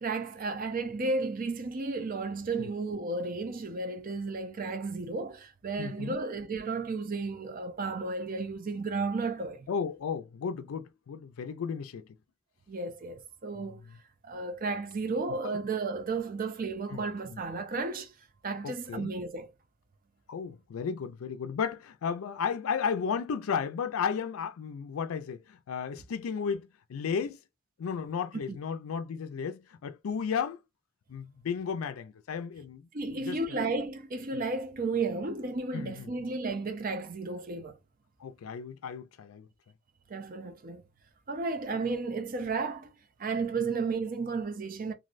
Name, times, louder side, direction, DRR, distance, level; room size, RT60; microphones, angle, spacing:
voice 1, 0.0-9.7 12.7-13.8 14.2-18.1 18.4-19.5 32.9-37.8 40.1-40.8 41.3-42.9 43.2-44.9, right 3 dB, 45° right, 0.5 m, -33 dB
voice 2, 5.8-6.1 9.7-12.1 15.4-15.6 16.9-17.0 18.6-19.1 20.3-27.4 27.8-30.6 31.1-33.4 34.3-34.4 35.7-36.1 38.2-39.5, left 6 dB, 90° left, 0.4 m, -34 dB
3.1 x 2.5 x 2.5 m
head